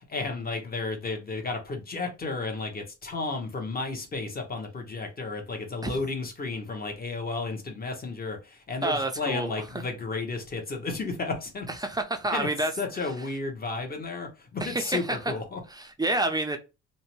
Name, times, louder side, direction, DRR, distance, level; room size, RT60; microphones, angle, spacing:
voice 1, 0.0-11.7 12.3-12.5 12.8-15.6, left 3 dB, 30° left, 0.9 m, -33 dB
voice 2, 8.8-9.5 11.8-12.7 13.0-13.1 14.6-15.2 15.7-16.6, right 2 dB, 15° right, 0.4 m, -28 dB
2.6 x 2.1 x 3.0 m
cardioid pair, 90°, 30 cm